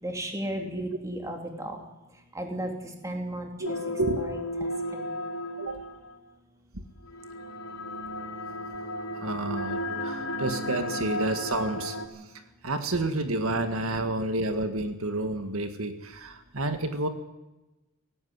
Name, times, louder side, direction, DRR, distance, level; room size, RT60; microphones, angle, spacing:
voice 1, 0.0-1.8 2.3-3.8 4.2-5.1, right 1 dB, 15° right, 3 dB, 3.1 m, -35 dB
sound 1, 3.6-6.2 7.1-12.1, left 1 dB, 85° left, 5.5 m, -34 dB
voice 2, 9.2-12.0 12.6-17.1, right 2 dB, 75° right, 8 dB, 1.8 m, -29 dB
17.5 x 16.0 x 9.6 m, 1.0 s
head